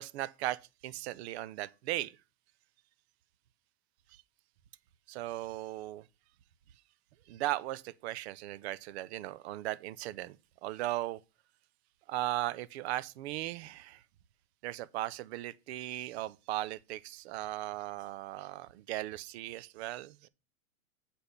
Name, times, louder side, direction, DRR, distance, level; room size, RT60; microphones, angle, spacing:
voice 1, 0.0-2.1 5.1-6.0 7.3-10.4 10.6-11.2 12.1-14.0 14.6-20.3, right 15 dB, 45° right, 0.6 m, -37 dB
7.9 x 4.3 x 6.6 m
supercardioid pair, 150°, 46 cm